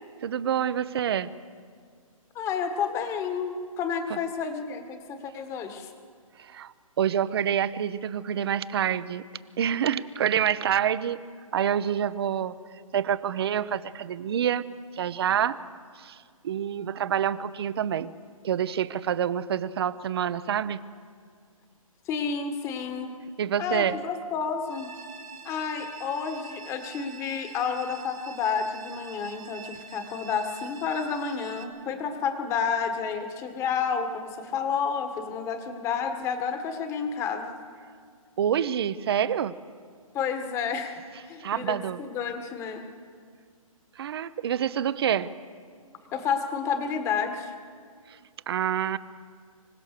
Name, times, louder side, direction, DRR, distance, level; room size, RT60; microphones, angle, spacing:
voice 1, 0.2-1.3 4.1-4.2 6.4-9.2 9.6-11.2 11.5-12.5 12.9-14.6 14.9-15.6 16.0-16.2 16.4-18.1 18.4-20.8 23.4-24.0 38.4-39.5 41.4-42.0 44.0-45.3 48.5-49.0, right 9 dB, 45° right, 15 dB, 0.8 m, -27 dB
voice 2, 2.3-5.9 22.1-23.2 23.6-24.9 25.4-37.5 40.1-42.8 46.1-47.5, left 6 dB, 15° left, 7 dB, 1.5 m, -30 dB
sound 1, 24.7-31.6, right 5 dB, 80° right, 4.3 m, -45 dB
25.5 x 16.5 x 6.7 m, 2.1 s
hypercardioid pair, 155°, 18 cm